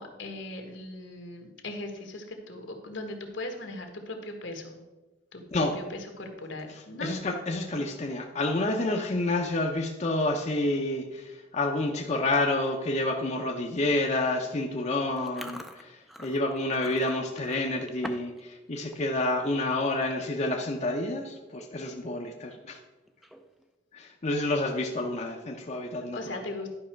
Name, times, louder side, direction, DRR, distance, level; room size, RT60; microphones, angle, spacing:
voice 1, 0.0-4.8 5.3-7.1 26.1-26.7, left 2 dB, 80° left, 4 dB, 1.4 m, -39 dB
voice 2, 6.7-22.8 23.9-26.4, left 2 dB, 40° left, 2 dB, 0.7 m, -29 dB
Chewing mastication, 15.2-18.4 18.7-19.0 19.5-19.7 20.4-20.5 20.8-21.1 21.5-21.6 23.1-23.6, equal, ahead, 0.5 m, -44 dB
11.0 x 5.5 x 4.4 m, 1.1 s
head